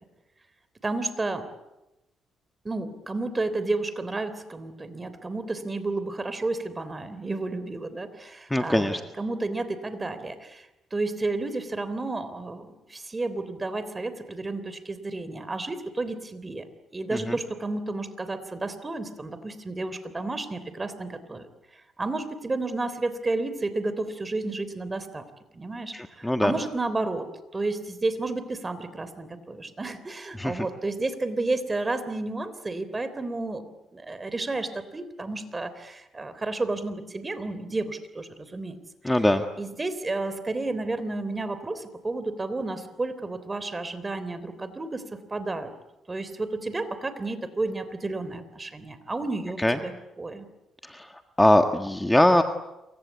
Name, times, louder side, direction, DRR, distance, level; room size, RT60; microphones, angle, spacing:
voice 1, 0.8-1.5 2.6-10.7 10.9-16.6 16.9-21.5 22.0-25.2 25.5-27.3 27.5-33.6 33.9-38.8 39.0-39.1 39.6-45.0 45.3-45.7 46.1-49.9 50.2-50.5, right 2 dB, 20° right, 12 dB, 3.4 m, -31 dB
voice 2, 8.5-9.0 17.1-17.3 25.9-26.5 30.4-30.6 39.0-39.4 49.6-49.8 50.9-51.1 51.4-52.4, left 1 dB, 5° left, 6 dB, 1.6 m, -21 dB
28.0 x 24.5 x 8.3 m, 0.95 s
cardioid pair, 100°, 0 cm